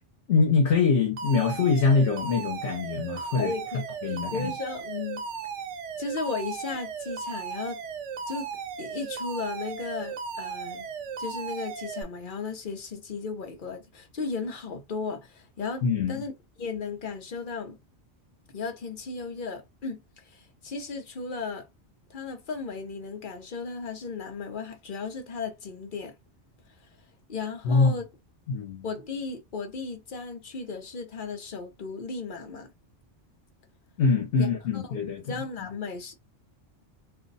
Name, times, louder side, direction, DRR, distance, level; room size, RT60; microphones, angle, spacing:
voice 1, 0.3-3.5 4.0-4.5 15.8-16.2 27.6-28.0 28.5-28.9 34.0-35.2, left 4 dB, 75° left, 1.1 m, -24 dB
Alarm, 1.2-12.0, right 6 dB, 90° right, 1.0 m, -36 dB
voice 2, 3.4-5.2 6.0-7.8 8.3-8.5 8.8-10.9 11.2-16.3 16.6-17.8 18.5-21.7 22.1-26.1 27.3-28.1 28.8-32.7 34.4-34.5 34.7-35.0 35.2-36.1, left 4 dB, 50° left, 0.9 m, -35 dB
2.6 x 2.2 x 3.9 m
omnidirectional pair, 1.2 m